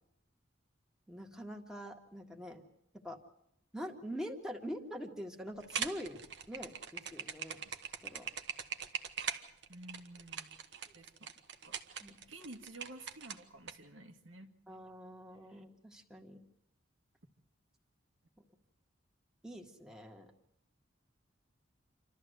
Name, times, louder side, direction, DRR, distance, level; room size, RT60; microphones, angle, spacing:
voice 1, 1.1-2.6 3.0-3.2 3.7-7.6 8.0-8.3 12.0-12.2 14.7-16.4 19.4-20.3, equal, 5° right, 1 dB, 1.8 m, -44 dB
sound 1, 5.6-13.7, right 7 dB, 60° right, 1.2 m, -41 dB
voice 2, 9.7-10.5 10.8-11.3 11.6-11.8 12.3-14.8 15.4-15.6, right 1 dB, 90° right, 4 dB, 2.0 m, -52 dB
28.0 x 13.0 x 8.0 m, 0.81 s
head